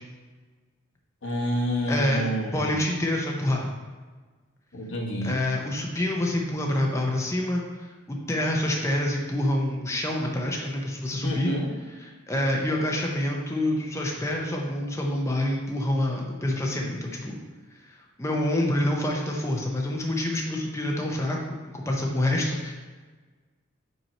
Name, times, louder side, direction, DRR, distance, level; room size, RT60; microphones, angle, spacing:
voice 1, 1.2-2.8 4.7-5.4 11.2-11.7, equal, 60° left, -1 dB, 1.2 m, -28 dB
voice 2, 1.9-3.7 5.2-11.5 11.9-17.4 17.9-22.7, left 1 dB, 15° left, -1 dB, 0.6 m, -27 dB
5.3 x 4.5 x 4.3 m, 1.4 s
head